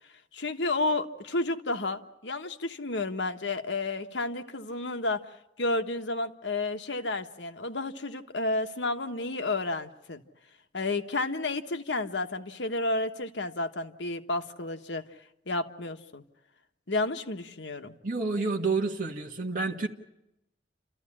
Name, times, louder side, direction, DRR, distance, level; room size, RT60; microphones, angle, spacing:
voice 1, 0.3-5.3 5.6-10.2 10.7-15.0 15.5-16.2 16.9-17.9, left 2 dB, 80° left, 6 dB, 1.3 m, -31 dB
voice 2, 18.0-19.9, right 3 dB, 45° right, 0 dB, 1.6 m, -29 dB
29.5 x 14.0 x 9.9 m, 0.90 s
head